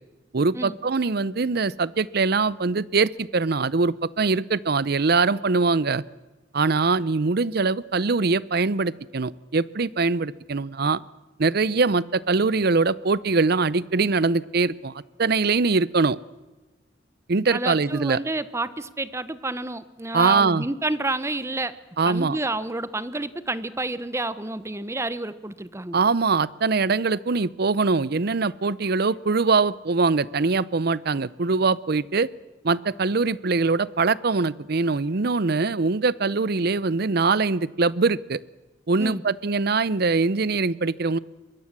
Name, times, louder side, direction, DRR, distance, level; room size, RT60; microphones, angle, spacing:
voice 1, 0.3-6.0 6.5-11.0 11.4-14.9 15.2-16.2 17.3-18.2 20.1-20.6 22.0-22.4 25.9-32.3 32.6-38.4 38.9-41.2, right 4 dB, 55° right, 20 dB, 0.6 m, -22 dB
voice 2, 17.5-21.8 22.0-26.0 39.0-39.2, right 2 dB, 15° right, 15 dB, 0.8 m, -29 dB
23.5 x 21.5 x 7.4 m, 1.2 s
head